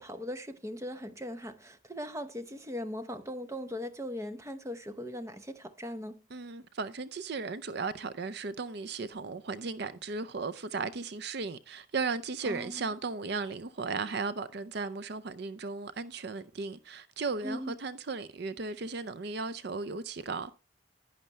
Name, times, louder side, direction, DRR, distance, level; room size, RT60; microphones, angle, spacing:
voice 1, 0.0-6.2 12.4-12.9 17.4-17.8, equal, 15° right, 0.7 m, -39 dB
voice 2, 6.3-20.5, right 4 dB, 55° right, 0.5 m, -36 dB
11.0 x 10.5 x 3.2 m
head